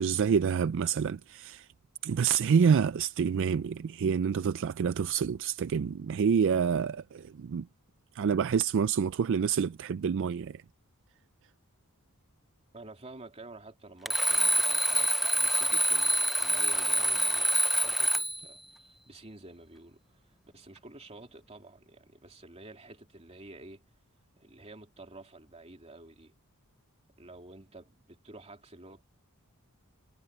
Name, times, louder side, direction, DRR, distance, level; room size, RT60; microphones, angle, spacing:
voice 1, 0.0-1.7 2.0-7.7 8.1-10.6, right 6 dB, 60° right, 0.4 m, -27 dB
voice 2, 12.7-23.8 24.4-26.3 27.2-29.0, right 2 dB, 30° right, 3.1 m, -50 dB
Alarm, 14.1-18.5, equal, ahead, 0.5 m, -26 dB
head